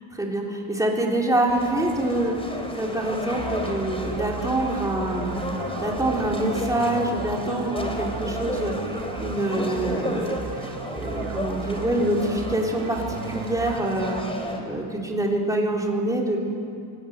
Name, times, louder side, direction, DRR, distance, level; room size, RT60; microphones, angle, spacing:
voice 1, 0.1-0.4 0.8-2.3 2.7-5.4 5.8-8.7 9.2-14.2 14.7-16.4, right 1 dB, 5° right, -1 dB, 3.6 m, -25 dB
sound 1, 1.5-14.6, left 1 dB, 10° left, 3.4 m, -33 dB
sound 2, 3.4-14.2, right 7 dB, 45° right, 1.3 m, -36 dB
23.0 x 19.0 x 9.1 m, 2.5 s
cardioid pair, 115°, 47 cm